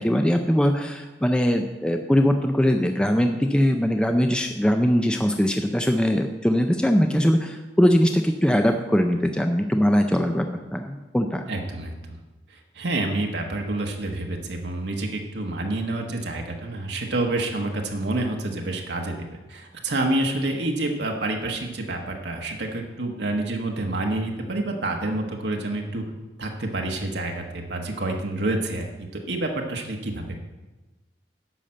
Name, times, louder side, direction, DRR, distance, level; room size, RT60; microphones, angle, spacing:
voice 1, 0.0-10.5 10.7-11.4, equal, 5° left, 5 dB, 0.4 m, -21 dB
voice 2, 11.5-12.2 12.5-26.0 26.4-28.9 29.3-30.4, right 2 dB, 70° right, 2 dB, 1.2 m, -28 dB
10.0 x 5.7 x 7.6 m, 1.1 s
head